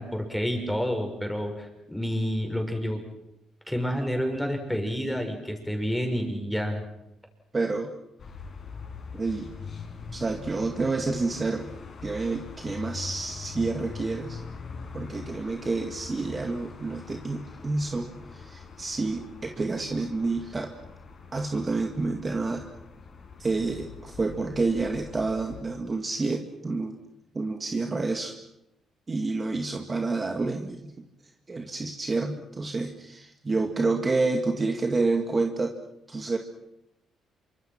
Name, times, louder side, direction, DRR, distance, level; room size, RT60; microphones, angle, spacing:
voice 1, 0.0-3.0 3.7-6.8, equal, 5° left, 4 dB, 6.3 m, -29 dB
voice 2, 7.5-7.9 9.1-9.5 10.1-11.7 12.0-14.4 14.9-20.7 21.3-22.7 23.4-27.0 27.3-28.4 29.1-30.9 31.5-35.8 36.1-36.4, right 3 dB, 30° right, 4 dB, 2.1 m, -29 dB
sound 1, 8.2-25.6, left 5 dB, 50° left, 5.2 m, -43 dB
27.5 x 25.0 x 6.1 m, 0.86 s
cardioid pair, 90°, 0 cm